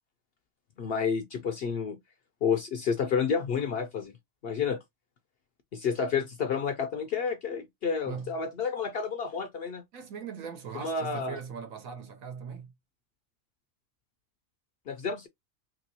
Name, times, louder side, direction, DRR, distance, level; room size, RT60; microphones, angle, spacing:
voice 1, 0.8-2.0 2.4-4.1 4.4-4.8 5.7-9.8 10.7-11.4 14.9-15.3, left 6 dB, 60° left, 0.6 m, -30 dB
voice 2, 9.9-12.7, right 6 dB, 80° right, 1.3 m, -40 dB
3.0 x 3.0 x 2.7 m
omnidirectional pair, 1.4 m